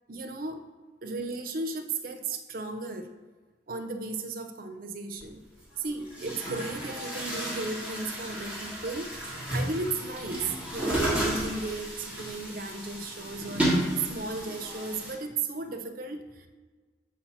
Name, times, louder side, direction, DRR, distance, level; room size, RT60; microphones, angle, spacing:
voice 1, 0.1-0.6 1.0-3.1 3.7-5.4 5.8-9.2 9.5-16.5, right 3 dB, 50° right, 7 dB, 0.5 m, -35 dB
Chatter / Gurgling / Tap, 5.2-5.3 6.0-15.1, right 1 dB, 10° right, 1.4 m, -32 dB
7.3 x 2.8 x 5.6 m, 1.4 s
head